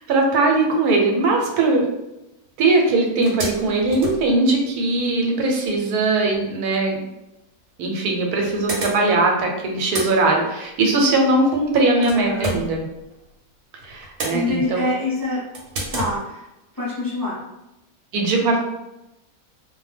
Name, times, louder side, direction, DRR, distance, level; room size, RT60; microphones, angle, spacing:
voice 1, 0.0-1.8 2.6-7.0 7.8-12.9 13.8-14.8 18.1-18.6, right 2 dB, 90° right, 1 dB, 1.1 m, -20 dB
sound 1, 2.5-2.6 2.9-3.0 3.2-5.1 7.1-7.2 8.1-9.4 9.7-13.4 13.7-14.9 15.5-16.2, right 2 dB, 60° right, 0.9 m, -32 dB
voice 2, 11.9-12.5 14.3-15.4 15.9-16.4 16.7-17.4, left 2 dB, 20° left, -9 dB, 0.7 m, -25 dB
2.5 x 2.1 x 3.2 m, 0.93 s
omnidirectional pair, 1.6 m